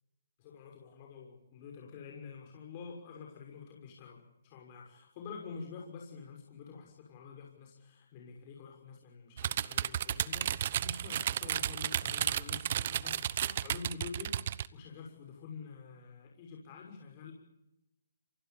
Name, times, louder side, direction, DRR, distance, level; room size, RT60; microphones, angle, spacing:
voice 1, 0.4-17.4, left 5 dB, 30° left, 0 dB, 6.4 m, -48 dB
sound 1, 9.4-14.7, right 10 dB, 40° right, 0.9 m, -33 dB
28.0 x 24.5 x 7.1 m, 0.93 s
hypercardioid pair, 155°, 0 cm